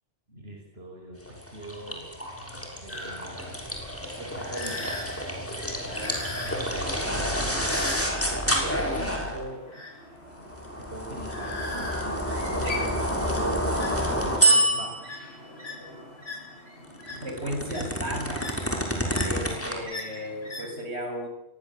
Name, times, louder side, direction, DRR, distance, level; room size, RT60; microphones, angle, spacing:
voice 1, 0.3-1.2 1.5-2.1 2.5-3.6 4.2-4.9 7.0-7.9 8.3-9.6 10.8-13.0 13.3-13.7 14.0-15.0 19.5-19.9, right 1 dB, 70° right, 1 dB, 6.1 m, -40 dB
sound 1, 1.3-9.5 10.4-15.2 16.8-19.8, equal, 10° left, 6.8 m, -28 dB
sound 2, 2.9-20.7, left 2 dB, 75° left, 8.0 m, -41 dB
voice 2, 5.8-6.2 17.1-18.5 19.2-21.3, equal, 85° right, 4 dB, 7.4 m, -35 dB
28.0 x 24.0 x 8.8 m, 0.86 s
omnidirectional pair, 1.1 m